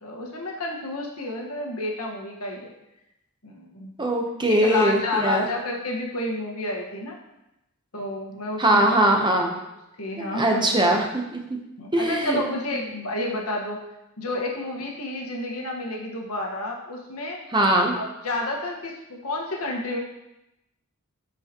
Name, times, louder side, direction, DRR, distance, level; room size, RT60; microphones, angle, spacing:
voice 1, 0.0-2.7 3.4-3.9 4.5-7.1 7.9-9.0 10.0-11.0 11.8-13.8 14.2-17.4 17.9-20.0, left 2 dB, 80° left, 0 dB, 1.5 m, -30 dB
voice 2, 4.0-5.5 8.6-9.5 10.2-11.6 11.9-12.4 17.5-18.0, right 1 dB, 20° right, 2 dB, 0.9 m, -21 dB
13.0 x 5.0 x 3.0 m, 0.90 s
head